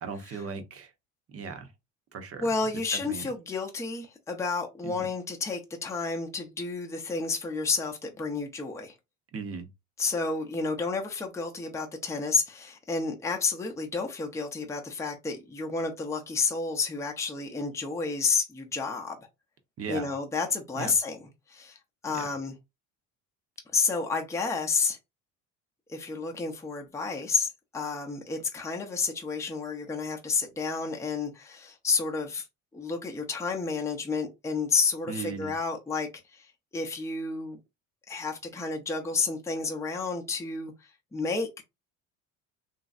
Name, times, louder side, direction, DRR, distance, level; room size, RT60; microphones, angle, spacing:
voice 1, 0.0-0.9 1.3-1.7 2.1-2.4 2.9-3.2 4.8-5.0 9.3-9.7 19.8-20.1 20.7-20.9 22.1-22.3 35.1-35.5, right 5 dB, 40° right, 0.8 m, -37 dB
voice 2, 2.4-8.9 10.0-19.2 19.9-21.2 21.5-21.8 22.0-22.5 23.7-25.0 25.9-32.5 32.7-37.6 38.1-40.7 41.1-41.5, left 4 dB, 10° left, 0.6 m, -30 dB
2.9 x 2.6 x 2.5 m
supercardioid pair, 95°, 37 cm